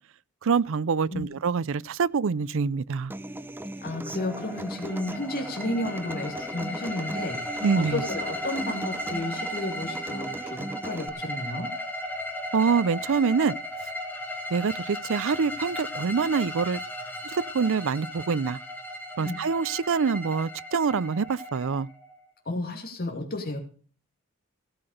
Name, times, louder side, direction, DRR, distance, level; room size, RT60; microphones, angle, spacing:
voice 1, 0.4-3.1 7.6-8.0 12.5-13.5 14.5-16.8 17.3-18.6 19.2-21.9, right 5 dB, 65° right, 0.5 m, -25 dB
Human voice / Acoustic guitar, 3.1-11.1, right 1 dB, 10° right, 0.6 m, -38 dB
voice 2, 3.8-11.7 19.2-19.4 22.4-23.6, left 2 dB, 45° left, 2.5 m, -32 dB
sound 1, 4.3-22.2, equal, 10° left, 3.2 m, -36 dB
17.0 x 6.0 x 6.6 m
head